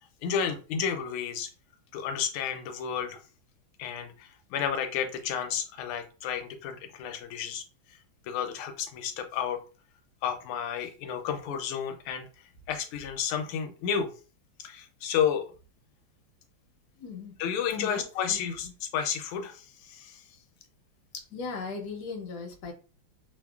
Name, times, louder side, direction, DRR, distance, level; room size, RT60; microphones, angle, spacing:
voice 1, 0.2-1.5 1.9-3.2 3.8-7.6 8.3-9.6 10.2-12.3 12.7-14.1 14.6-15.5 17.4-20.2, left 8 dB, 85° left, 6 dB, 1.5 m, -31 dB
voice 2, 17.0-17.3 17.7-18.0 18.3-18.5 21.1-22.7, left 4 dB, 65° left, 2 dB, 1.0 m, -37 dB
3.4 x 2.1 x 2.3 m, 0.36 s
omnidirectional pair, 2.3 m